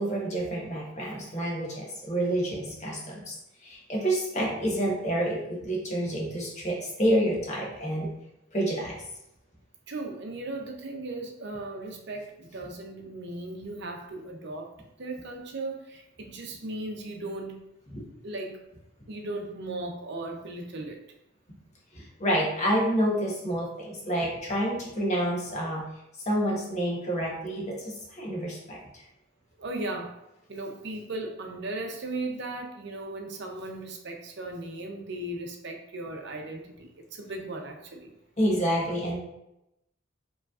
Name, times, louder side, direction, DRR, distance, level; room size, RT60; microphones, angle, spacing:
voice 1, 0.0-3.4 3.6-8.1 8.5-8.9 17.9-18.0 21.9-25.8 26.3-29.0 38.4-39.2, right 1 dB, 35° left, -3 dB, 1.1 m, -28 dB
voice 2, 9.9-14.7 15.0-17.6 18.2-18.6 19.1-21.0 29.6-30.2 30.5-38.1, right 2 dB, 60° right, 3 dB, 0.7 m, -37 dB
5.0 x 3.1 x 2.4 m, 0.85 s
head